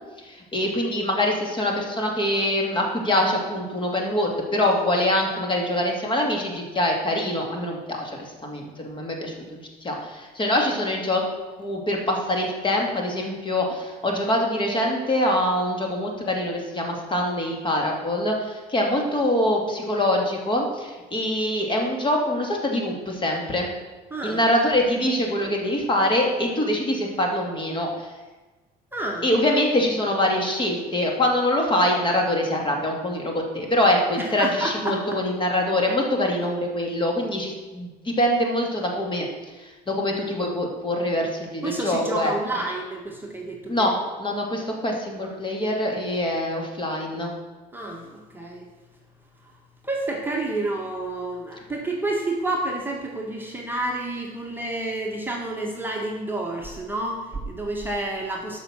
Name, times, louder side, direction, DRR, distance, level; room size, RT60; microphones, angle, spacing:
voice 1, 0.2-11.2 11.6-23.7 24.2-28.1 29.2-39.3 39.6-42.3 43.7-47.4, left 1 dB, 30° left, 1 dB, 2.4 m, -24 dB
voice 2, 24.1-24.4 28.9-29.3 34.2-35.2 41.6-43.9 45.2-45.4 47.7-48.7 49.4-49.5 49.8-58.6, right 2 dB, 10° right, -1 dB, 1.5 m, -29 dB
12.0 x 5.8 x 6.3 m, 1.2 s
cardioid pair, 110°, 17 cm